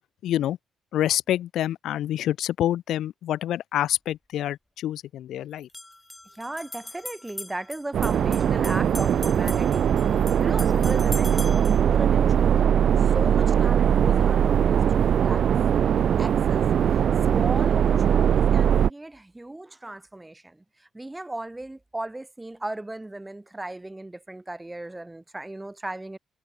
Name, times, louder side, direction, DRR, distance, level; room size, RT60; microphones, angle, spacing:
voice 1, 0.2-0.6 0.9-5.7, left 12 dB, 75° left, 0.8 m, -27 dB
sound 1, 3.9-4.0 5.6-11.8, left 1 dB, 10° left, 3.5 m, -40 dB
voice 2, 6.3-15.6 16.2-26.2, right 2 dB, 10° right, 6.0 m, -36 dB
sound 2, 7.9-18.9, right 8 dB, 60° right, 0.4 m, -21 dB
cardioid pair, 90°, 0 cm